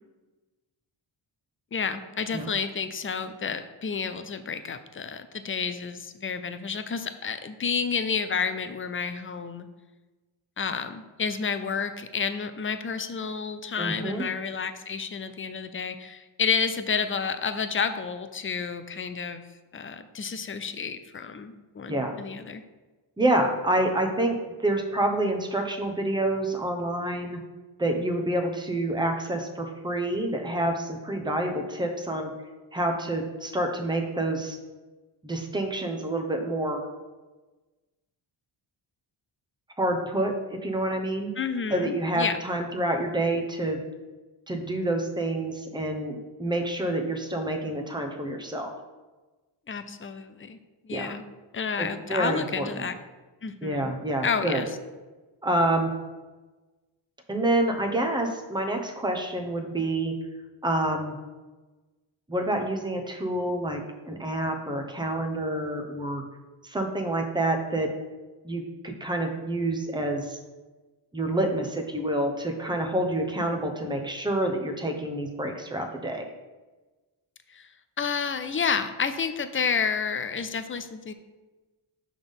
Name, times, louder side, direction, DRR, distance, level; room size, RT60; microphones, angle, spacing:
voice 1, 1.7-9.7 10.6-19.4 19.7-22.6 41.4-42.4 49.7-50.6 50.8-51.2 51.5-53.0 53.4-53.9 54.2-54.7 77.5-77.7 78.0-81.1, left 6 dB, 30° left, 10 dB, 0.4 m, -30 dB
voice 2, 13.8-14.2 21.9-22.1 23.2-24.4 24.6-27.4 27.8-32.3 32.7-34.6 35.2-36.8 39.8-41.3 41.7-43.8 44.5-48.7 50.9-51.1 51.8-52.9 53.6-54.6 55.4-55.9 57.3-60.1 60.6-61.1 62.3-63.8 64.1-66.2 66.6-67.9 68.4-70.4 71.1-76.3, right 1 dB, 10° right, 3 dB, 0.8 m, -28 dB
5.9 x 3.7 x 5.3 m, 1.2 s
wide cardioid pair, 100°, 50 cm